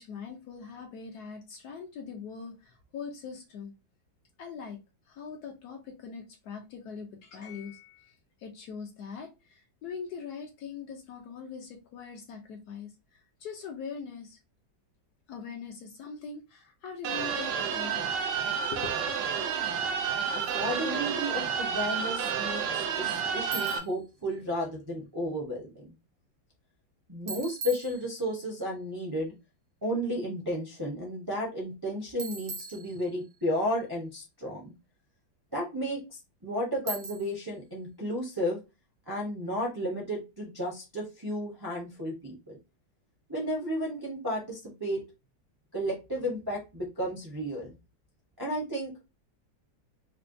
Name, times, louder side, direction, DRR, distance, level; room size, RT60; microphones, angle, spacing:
voice 1, 0.0-3.7 4.4-4.8 5.1-14.4 15.3-18.1 18.7-19.0, left 6 dB, 65° left, 1.0 m, -42 dB
sound 1, 17.0-23.8, right 7 dB, 75° right, 1.3 m, -30 dB
voice 2, 20.5-25.9 27.1-29.3 29.8-34.7 35.5-36.0 36.4-38.6 39.1-42.6 43.3-45.0 45.7-47.7 48.4-48.9, equal, 25° right, 0.5 m, -33 dB
Bicycle, 23.5-24.0 27.3-28.5 32.2-33.4 36.9-37.5, right 4 dB, 60° right, 1.0 m, -41 dB
4.3 x 2.2 x 2.6 m
omnidirectional pair, 2.0 m